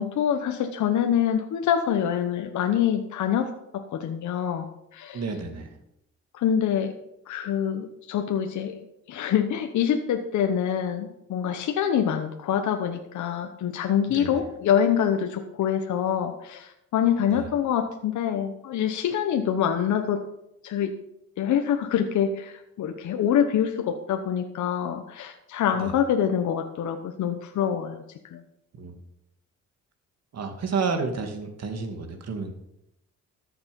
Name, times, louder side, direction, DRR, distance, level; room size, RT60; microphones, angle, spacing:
voice 1, 0.0-4.7 4.9-5.2 6.3-6.9 7.3-20.2 20.6-20.9 21.4-28.0 28.3-28.4, left 9 dB, 70° left, 6 dB, 1.1 m, -25 dB
voice 2, 5.1-5.7 14.1-14.4 17.3-17.5 25.7-25.9 28.8-29.0 30.3-32.5, right 4 dB, 55° right, 6 dB, 2.3 m, -31 dB
13.5 x 7.1 x 5.3 m, 0.82 s
cardioid pair, 90°, 30 cm